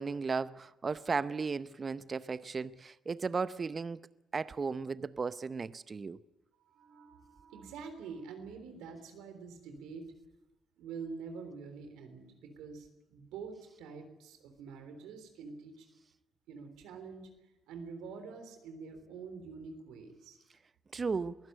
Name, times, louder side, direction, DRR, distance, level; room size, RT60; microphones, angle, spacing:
voice 1, 0.0-4.0 4.3-6.2 20.9-21.4, right 4 dB, 40° right, 0.7 m, -35 dB
voice 2, 6.7-10.1 10.8-15.9 16.5-17.3 17.7-20.4, right 5 dB, 75° right, 3.6 m, -46 dB
22.5 x 15.5 x 9.1 m
hypercardioid pair, 50°, 0 cm